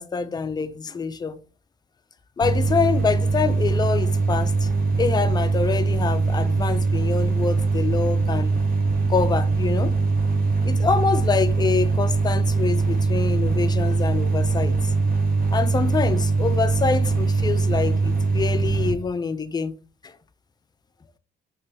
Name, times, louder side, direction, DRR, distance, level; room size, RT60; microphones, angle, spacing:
voice 1, 0.0-1.4 2.4-4.7 5.0-8.5 9.1-9.9 10.6-14.9 15.5-19.7 20.0-20.2, left 5 dB, 20° left, 0.3 m, -26 dB
sound 1, 2.4-18.9, right 3 dB, 45° right, 1.0 m, -22 dB
3.3 x 2.9 x 2.9 m
cardioid pair, 90°, 20 cm